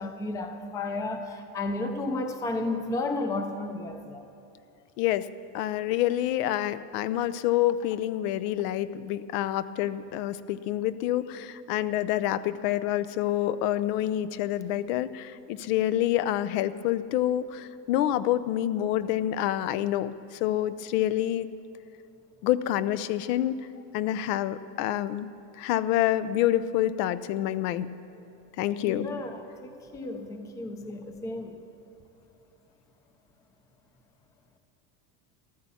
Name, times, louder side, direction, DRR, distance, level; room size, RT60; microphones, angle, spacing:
voice 1, 0.0-4.2 28.8-31.6, left 2 dB, 10° left, 6 dB, 0.4 m, -33 dB
voice 2, 5.0-5.3 5.5-21.5 22.4-23.5 23.9-25.3 25.6-27.9 28.6-29.1, left 13 dB, 75° left, 15 dB, 0.7 m, -27 dB
14.5 x 12.5 x 7.0 m, 2.7 s
cardioid pair, 160°, 47 cm